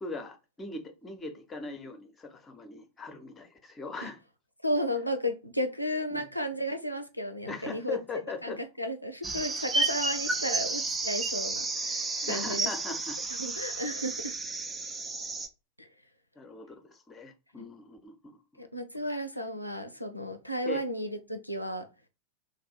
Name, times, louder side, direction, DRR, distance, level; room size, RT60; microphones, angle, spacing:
voice 1, 0.0-4.2 6.1-6.3 7.5-8.6 12.2-13.2 16.4-18.7 19.1-19.2 20.6-20.8, left 3 dB, 15° left, 0.7 m, -40 dB
voice 2, 4.6-8.0 8.4-12.7 13.4-14.3 15.8-15.9 18.6-21.8, equal, 90° left, 0.4 m, -33 dB
sound 1, 9.2-15.5, right 3 dB, 15° right, 0.5 m, -32 dB
3.2 x 2.6 x 4.0 m
figure-of-eight pair, 90°, 0 cm